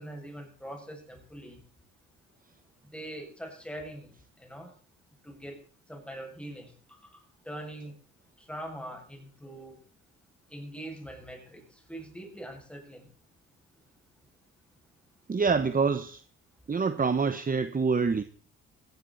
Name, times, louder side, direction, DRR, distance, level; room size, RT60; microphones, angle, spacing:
voice 1, 0.0-1.6 2.8-4.7 5.2-8.0 8.4-9.8 10.5-13.1, right 1 dB, 5° left, 7.3 m, -43 dB
voice 2, 15.3-16.2 16.7-18.2, right 5 dB, 30° right, 1.2 m, -26 dB
16.5 x 16.5 x 4.3 m
cardioid pair, 90°, 30 cm